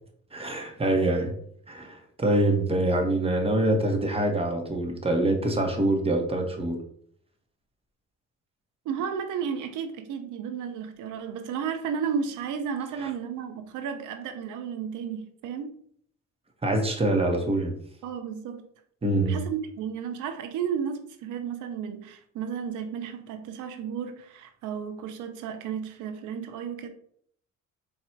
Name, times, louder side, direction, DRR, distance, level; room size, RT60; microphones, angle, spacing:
voice 1, 0.3-1.3 1.7-6.8 13.0-13.1 16.6-17.8 19.0-19.4, right 1 dB, 20° right, 1.0 m, -25 dB
voice 2, 8.9-15.8 18.0-18.7 19.3-26.9, right 7 dB, 90° right, 0.6 m, -33 dB
4.3 x 2.4 x 4.4 m
cardioid pair, 90°, 30 cm